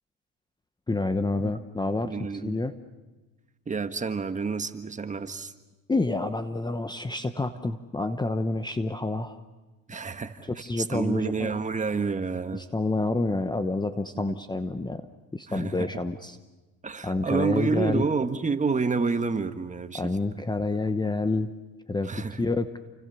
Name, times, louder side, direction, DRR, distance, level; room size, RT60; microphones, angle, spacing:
voice 1, 0.9-2.1 2.4-2.8 5.9-9.4 10.6-11.6 12.5-16.4 17.0-18.0 19.9-21.5 21.9-22.1 22.4-22.8, left 2 dB, 10° left, 10 dB, 1.0 m, -28 dB
voice 2, 2.0-2.6 3.7-5.5 9.9-12.6 14.1-14.3 15.5-15.9 16.8-20.1 22.0-22.5, right 4 dB, 20° right, 9 dB, 1.5 m, -29 dB
29.5 x 25.0 x 6.9 m, 1.2 s
supercardioid pair, 105°, 37 cm